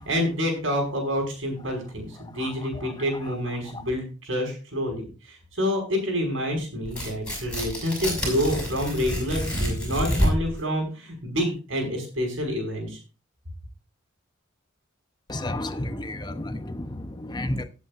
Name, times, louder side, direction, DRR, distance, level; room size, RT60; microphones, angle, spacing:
voice 1, 0.0-13.0, equal, 75° right, 5.8 m, -28 dB
Tearing, 6.9-10.6, equal, 5° left, 5.8 m, -27 dB
voice 2, 15.3-17.6, left 1 dB, 20° left, 0.9 m, -31 dB
18.5 x 8.3 x 2.5 m
head